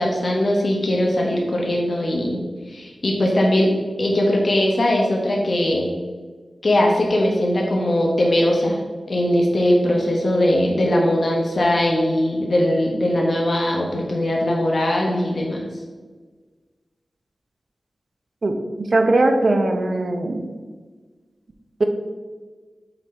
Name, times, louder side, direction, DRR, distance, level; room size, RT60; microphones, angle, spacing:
voice 1, 0.0-2.4 2.7-3.7 4.0-5.9 6.6-8.8 9.1-15.6, left 1 dB, 55° left, -1 dB, 1.0 m, -20 dB
voice 2, 18.9-20.5 21.8-21.9, right 2 dB, 55° right, 5 dB, 0.7 m, -19 dB
5.9 x 3.9 x 4.4 m, 1.4 s
wide cardioid pair, 80°, 0 cm